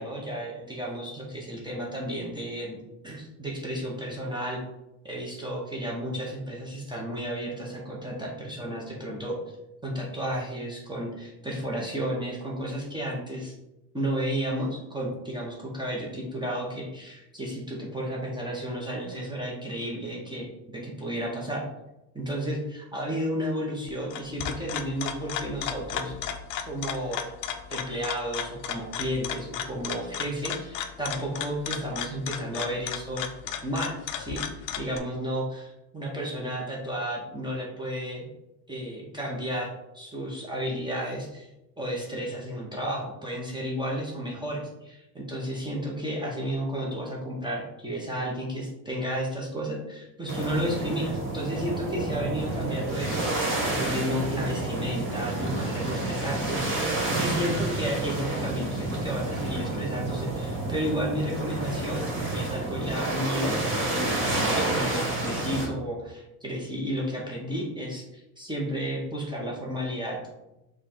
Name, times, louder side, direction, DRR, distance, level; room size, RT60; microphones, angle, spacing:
voice 1, 0.0-4.6 5.0-9.4 9.8-13.5 13.9-20.5 20.7-21.6 22.1-26.1 26.7-27.2 27.7-33.2 33.6-34.4 34.7-38.3 38.7-41.5 41.8-62.1 62.3-70.2, equal, 10° right, -4 dB, 0.8 m, -32 dB
sound 1, 23.9-35.0, left 9 dB, 50° left, 0.5 m, -35 dB
sound 2, 50.3-65.7, right 2 dB, 25° right, 1.5 m, -29 dB
5.0 x 2.4 x 4.3 m, 0.94 s
cardioid pair, 125°, 44 cm